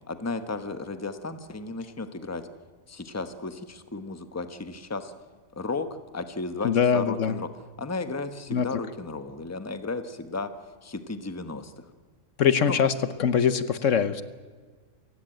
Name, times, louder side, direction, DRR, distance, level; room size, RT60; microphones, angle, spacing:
voice 1, 0.1-2.4 2.9-5.1 5.6-5.9 6.1-7.5 7.8-10.5 10.8-11.9 12.7-12.8, left 3 dB, 15° left, 9 dB, 1.1 m, -34 dB
voice 2, 6.6-7.4 8.5-8.7 12.4-12.9 13.2-14.2, left 7 dB, 65° left, 13 dB, 1.2 m, -22 dB
27.0 x 16.0 x 9.0 m, 1.5 s
omnidirectional pair, 1.4 m